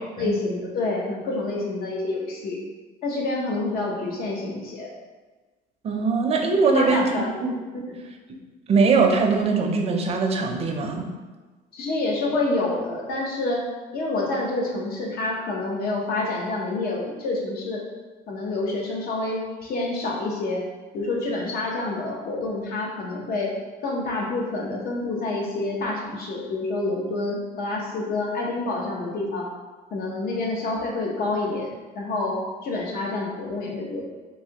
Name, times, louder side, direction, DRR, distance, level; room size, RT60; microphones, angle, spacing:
voice 1, 0.2-2.6 3.0-4.9 6.7-7.5 11.7-13.7 13.9-17.8 18.3-20.6 20.9-23.5 23.8-29.5 29.9-34.0, left 2 dB, 65° left, -1 dB, 0.8 m, -28 dB
voice 2, 5.8-7.1 7.4-7.6 8.3-8.4 8.7-11.1, right 4 dB, 35° right, 2 dB, 0.5 m, -21 dB
3.1 x 2.7 x 2.8 m, 1.3 s
cardioid pair, 110°, 17 cm